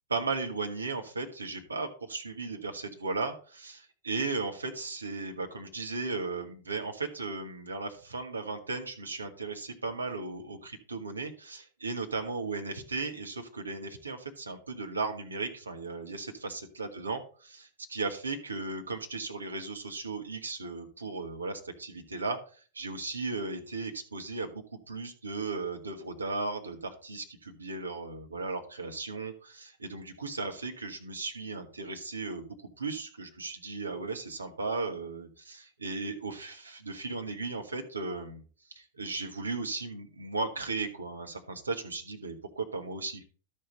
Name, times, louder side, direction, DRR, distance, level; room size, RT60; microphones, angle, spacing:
voice 1, 0.1-22.4 22.7-38.4 38.7-43.2, right 3 dB, 75° right, 4 dB, 1.4 m, -36 dB
12.5 x 5.6 x 4.0 m, 0.40 s
figure-of-eight pair, 90°, 0 cm